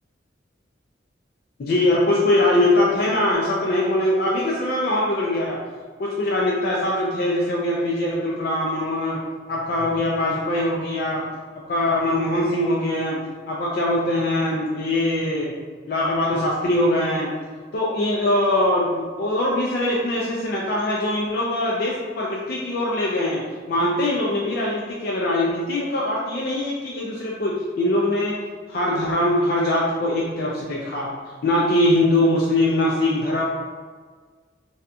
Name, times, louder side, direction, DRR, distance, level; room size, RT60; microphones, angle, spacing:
voice 1, 1.6-5.6 6.0-9.2 9.5-11.2 11.7-13.2 13.5-15.5 15.9-17.3 17.7-23.4 23.7-28.4 28.7-31.1 31.4-33.4, left 1 dB, 50° left, -4 dB, 0.3 m, -22 dB
2.7 x 2.4 x 2.2 m, 1.5 s
head